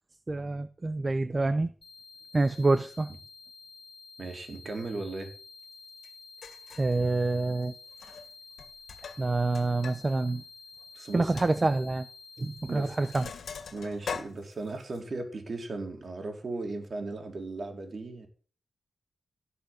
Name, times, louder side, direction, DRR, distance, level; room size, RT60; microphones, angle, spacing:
voice 1, 0.3-1.7 2.3-3.1 6.8-7.7 9.2-10.4 11.1-12.0 12.4-13.3, right 2 dB, 30° right, 12 dB, 0.8 m, -27 dB
sound 1, 1.8-13.2, left 4 dB, 55° left, 3.0 m, -50 dB
voice 2, 4.2-5.3 10.9-11.4 12.7-13.0 13.7-18.3, right 3 dB, 50° right, 3 dB, 4.3 m, -37 dB
Sink (filling or washing), 6.0-6.1 6.4-6.9 7.9-8.3 8.6-10.0 10.3-10.4 10.8-10.9 11.4-11.5 12.4-12.6 12.8-15.0, left 6 dB, 85° left, 2.1 m, -41 dB
17.0 x 7.0 x 7.8 m, 0.40 s
cardioid pair, 80°, 0 cm